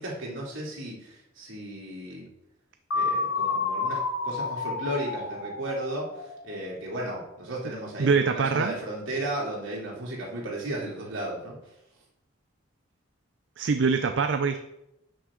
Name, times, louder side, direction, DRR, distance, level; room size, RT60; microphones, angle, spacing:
voice 1, 0.0-2.3 2.9-11.5, right 1 dB, 80° right, -4 dB, 3.0 m, -34 dB
sound 1, 2.9-6.8, left 4 dB, 80° left, 1.0 m, -30 dB
voice 2, 8.0-8.8 13.6-14.6, right 5 dB, 65° right, 8 dB, 0.5 m, -24 dB
11.0 x 6.3 x 3.8 m, 0.88 s
head